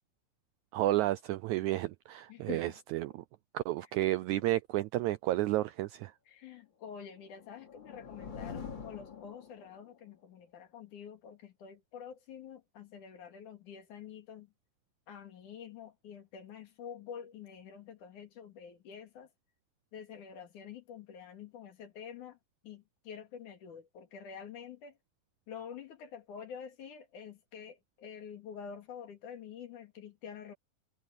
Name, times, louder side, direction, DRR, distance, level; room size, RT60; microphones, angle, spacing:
voice 1, 0.7-3.2 3.5-6.1, right 16 dB, 80° right, 1.7 m, -31 dB
voice 2, 2.3-2.8 6.3-14.5 15.1-19.3 19.9-22.4 22.6-25.0 25.5-30.5, left 7 dB, 65° left, 3.7 m, -47 dB
sound 1, 7.1-10.0, left 6 dB, 35° left, 3.4 m, -45 dB
omnidirectional pair, 3.9 m